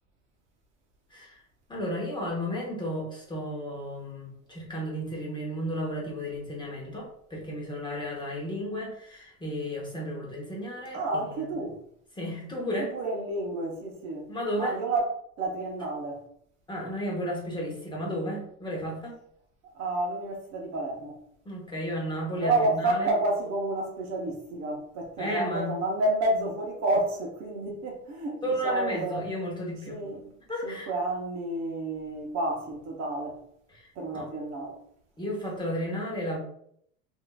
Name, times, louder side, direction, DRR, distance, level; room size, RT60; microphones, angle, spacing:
voice 1, 1.7-11.0 12.2-12.9 14.3-14.8 16.7-19.1 21.4-23.1 25.2-25.8 28.4-30.0 30.5-30.9 33.8-33.9 34.1-34.3 35.2-36.4, equal, 10° left, 0.9 m, -33 dB
voice 2, 10.9-11.8 12.8-14.3 14.6-15.1 15.4-16.3 19.7-21.2 22.4-29.3 29.9-30.3 30.6-33.4 33.9-34.8, right 2 dB, 40° right, 0.8 m, -30 dB
3.6 x 2.6 x 2.3 m
supercardioid pair, 110°, 41 cm